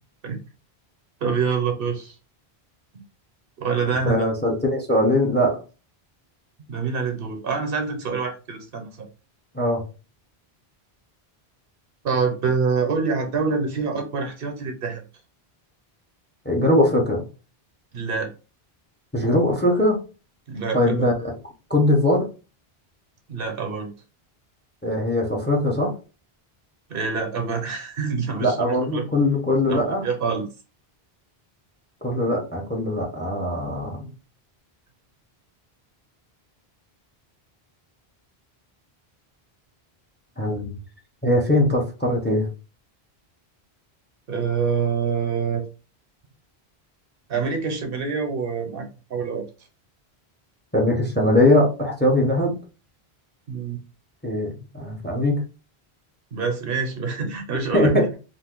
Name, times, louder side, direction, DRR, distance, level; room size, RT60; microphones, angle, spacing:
voice 1, 1.2-2.2 3.6-4.3 6.7-9.1 12.0-15.0 17.9-18.3 20.5-21.1 23.3-23.9 26.9-29.0 29.7-30.5 44.3-45.7 47.3-49.4 53.5-53.8 56.3-58.1, right 5 dB, 65° right, 0.9 m, -26 dB
voice 2, 4.1-5.5 9.5-9.8 16.4-17.2 19.1-20.0 20.7-21.3 21.7-22.2 24.8-25.9 28.4-30.0 32.0-34.1 40.4-40.8 41.2-42.5 50.7-52.5 54.2-55.4 57.7-58.2, left 1 dB, 10° left, 0.7 m, -21 dB
2.5 x 2.5 x 3.6 m
omnidirectional pair, 1.1 m